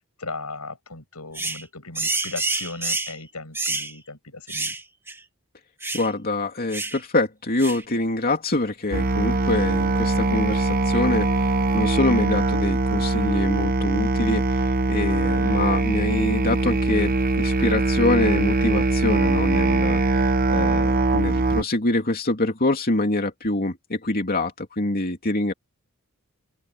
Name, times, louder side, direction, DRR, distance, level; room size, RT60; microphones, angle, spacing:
voice 1, 0.2-4.7, left 3 dB, 85° left, 7.7 m, -37 dB
sound 1, 1.3-1.6 1.9-3.2 3.5-3.9 4.5-4.8 5.1-5.2 5.8-6.1 6.7-7.0 7.6-7.8, right 3 dB, 10° right, 2.2 m, -28 dB
voice 2, 5.9-25.5, left 2 dB, 45° left, 2.8 m, -25 dB
Musical instrument, 8.9-21.6, right 2 dB, 40° right, 1.1 m, -22 dB
open air
head